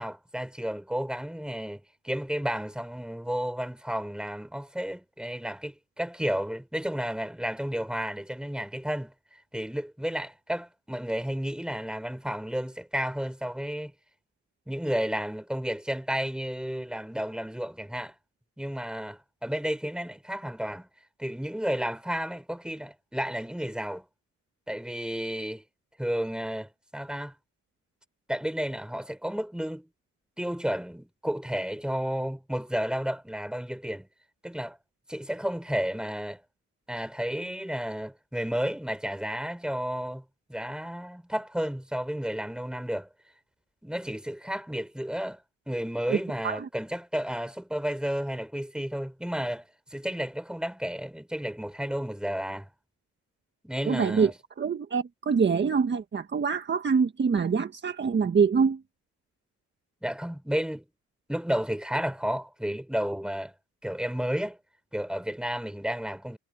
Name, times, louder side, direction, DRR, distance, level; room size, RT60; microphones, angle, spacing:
voice 1, 0.0-9.1 9.5-13.9 14.7-18.1 18.6-20.9 21.2-24.0 24.7-25.6 26.0-27.3 28.3-29.9 30.4-34.1 34.4-34.8 35.1-36.4 36.9-40.2 40.5-43.1 43.8-45.4 45.7-52.7 53.6-54.3 60.0-60.9 61.3-63.5 63.8-64.6 64.9-66.4, equal, 5° right, 5.4 m, -32 dB
voice 2, 53.9-54.3 54.6-58.8, right 5 dB, 35° right, 1.6 m, -25 dB
cardioid pair, 90°, 30 cm